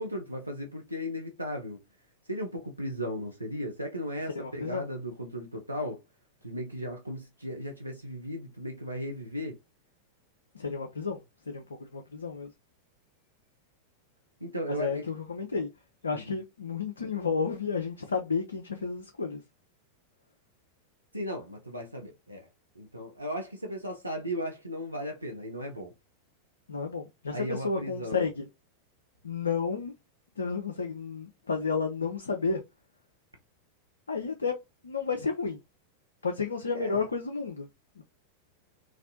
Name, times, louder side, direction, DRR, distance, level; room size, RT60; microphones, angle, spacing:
voice 1, 0.0-1.8 2.3-6.0 6.4-9.6 14.4-15.0 16.1-16.4 21.1-22.5 22.8-25.9 27.3-28.3 36.7-37.0, equal, 85° right, 0.6 m, -36 dB
voice 2, 4.3-4.8 10.5-11.2 11.5-12.5 14.7-15.7 16.0-19.4 26.7-28.5 29.2-29.9 30.4-32.6 34.1-34.6 34.8-35.6 36.2-37.7 38.0-38.1, left 5 dB, 75° left, 0.5 m, -31 dB
4.1 x 2.5 x 2.7 m
figure-of-eight pair, 90°, 0 cm